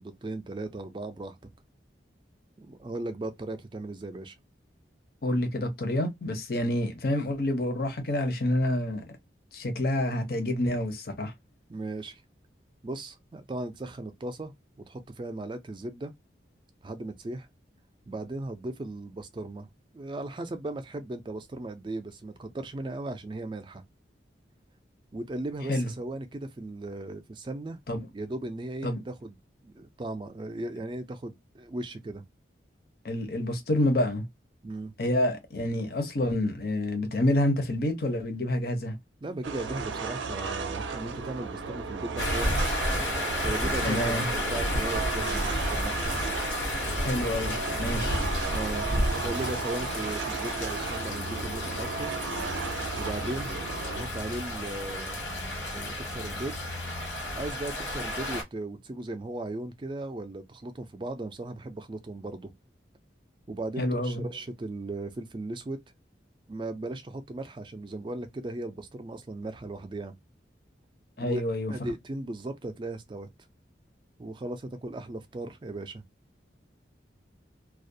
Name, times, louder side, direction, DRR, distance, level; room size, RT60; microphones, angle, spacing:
voice 1, 0.0-1.5 2.6-4.3 11.7-12.2 12.8-14.5 14.9-16.1 16.8-17.5 18.1-19.7 19.9-23.8 25.1-27.8 28.1-29.4 29.6-32.2 34.6-34.9 39.2-42.6 43.4-46.1 48.5-52.1 53.0-53.5 53.9-55.2 55.7-56.5 57.3-62.5 63.5-65.8 66.5-70.1 71.2-71.4 71.7-73.3 74.2-76.0, right 2 dB, 25° right, 0.3 m, -37 dB
voice 2, 5.2-9.1 9.5-11.3 25.7-25.9 27.9-28.1 28.8-29.0 33.0-34.2 35.0-39.0 43.8-44.3 47.0-48.2 63.8-64.2 71.2-71.7, left 1 dB, 55° left, 0.6 m, -28 dB
sound 1, 39.4-54.0, right 4 dB, 85° right, 0.5 m, -35 dB
sound 2, 42.2-58.4, left 1 dB, 80° left, 1.0 m, -31 dB
2.3 x 2.1 x 2.6 m
head